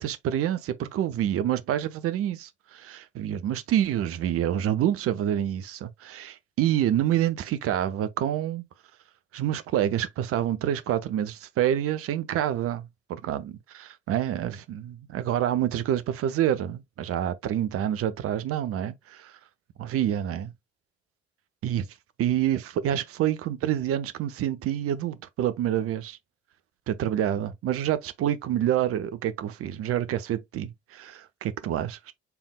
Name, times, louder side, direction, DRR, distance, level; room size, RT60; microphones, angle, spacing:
voice 1, 0.0-8.6 9.3-19.3 19.8-20.5 21.6-21.9 22.2-26.2 26.9-32.1, right 11 dB, 45° right, 0.6 m, -27 dB
6.8 x 3.5 x 2.2 m
figure-of-eight pair, 45°, 32 cm